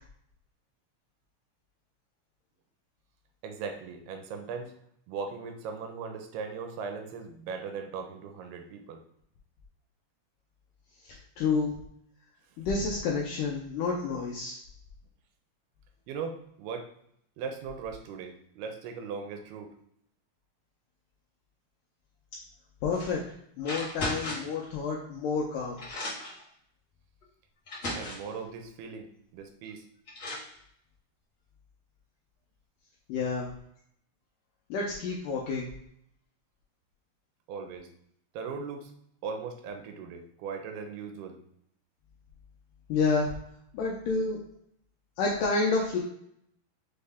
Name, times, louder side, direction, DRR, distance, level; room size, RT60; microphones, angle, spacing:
voice 1, 3.4-4.7 5.1-9.0 16.1-16.9 17.4-19.7 28.0-29.1 29.3-29.8 37.5-37.9 38.3-38.9 39.2-41.4, right 5 dB, 85° right, 5 dB, 2.5 m, -38 dB
voice 2, 11.0-11.7 12.6-14.6 22.8-23.2 23.6-25.8 33.1-33.5 34.7-35.7 42.9-43.3 43.7-44.4 45.2-46.0, left 4 dB, 85° left, -2 dB, 1.9 m, -29 dB
sound 1, 22.9-23.1 23.6-24.6 25.4-25.5 25.8-26.4 27.2-27.3 27.7-28.3 29.6-29.7 30.1-30.5, left 1 dB, 65° left, 0.8 m, -36 dB
6.4 x 2.1 x 3.4 m, 0.71 s
omnidirectional pair, 4.4 m